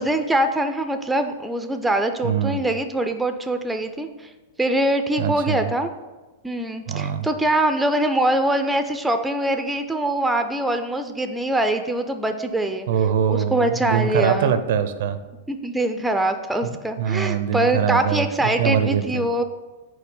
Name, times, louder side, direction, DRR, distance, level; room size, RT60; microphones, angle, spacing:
voice 1, 0.0-4.3 4.6-5.9 6.4-12.9 13.3-14.5 15.5-19.4, right 1 dB, 5° right, 7 dB, 0.3 m, -23 dB
voice 2, 2.2-2.6 5.2-5.7 6.9-7.3 12.9-15.2 16.6-19.3, right 8 dB, 65° right, 11 dB, 0.4 m, -23 dB
4.8 x 3.9 x 5.3 m, 1.2 s
supercardioid pair, 145°, 0 cm